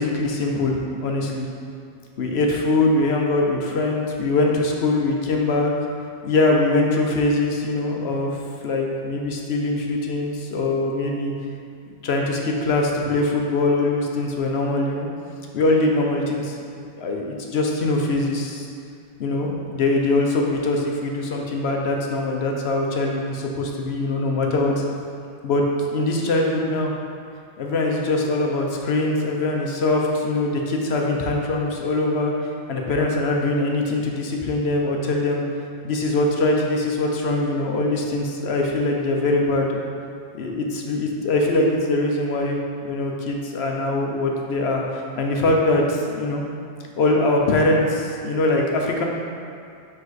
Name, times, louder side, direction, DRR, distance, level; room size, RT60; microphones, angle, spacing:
voice 1, 0.0-1.5 2.2-5.7 6.2-11.3 12.0-15.1 15.5-18.7 19.2-24.8 25.4-25.6 25.9-26.9 27.6-35.4 35.8-39.8 40.3-46.4 47.0-49.0, left 2 dB, 65° left, 0 dB, 0.9 m, -22 dB
5.4 x 5.2 x 4.0 m, 2.4 s
omnidirectional pair, 1.2 m